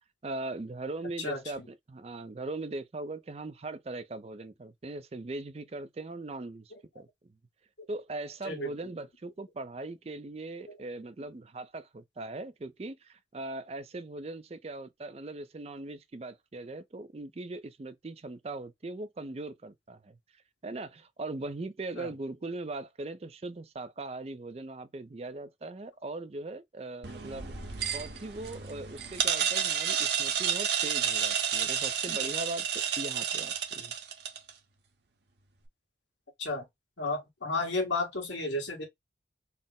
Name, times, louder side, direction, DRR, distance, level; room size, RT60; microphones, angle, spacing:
voice 1, 0.2-7.1 7.9-20.2 20.6-27.5 27.9-32.7 33.0-33.9, right 2 dB, 35° right, 0.4 m, -40 dB
sound 1, 27.0-34.5, right 8 dB, 65° right, 0.8 m, -31 dB
voice 2, 37.0-38.8, left 2 dB, 80° left, 1.5 m, -32 dB
4.1 x 2.0 x 3.6 m
head